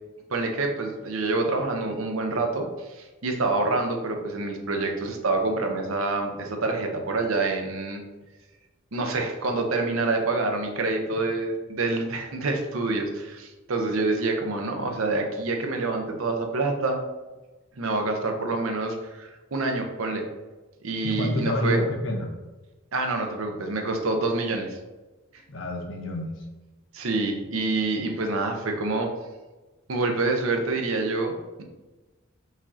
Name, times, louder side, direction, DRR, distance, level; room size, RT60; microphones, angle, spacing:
voice 1, 0.3-8.0 8.9-17.0 17.8-20.3 20.8-21.8 22.9-24.8 26.9-29.1 29.9-31.6, right 3 dB, 85° right, 4 dB, 0.7 m, -27 dB
voice 2, 21.0-22.3 25.5-26.3, left 1 dB, 70° left, 2 dB, 0.8 m, -28 dB
5.2 x 2.8 x 3.6 m, 1.2 s
head